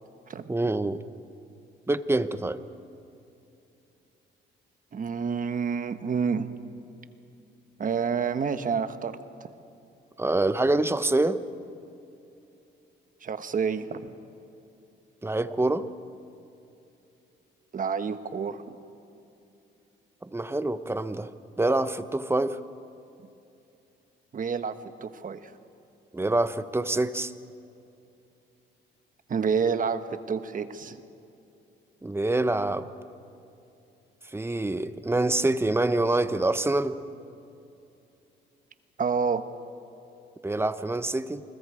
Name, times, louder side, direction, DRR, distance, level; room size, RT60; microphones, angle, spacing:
voice 1, 0.5-1.0 1.9-2.6 10.2-11.4 15.2-15.9 20.2-21.3 21.6-22.6 26.1-27.3 32.0-32.9 34.3-36.9 40.4-41.4, right 2 dB, 10° right, 12 dB, 0.9 m, -26 dB
voice 2, 4.9-6.5 7.8-9.2 13.2-14.1 17.7-18.8 24.3-24.8 25.0-25.5 29.3-31.0 39.0-39.4, right 6 dB, 45° right, 10 dB, 1.2 m, -28 dB
28.5 x 21.5 x 4.9 m, 2.8 s
cardioid pair, 90°, 20 cm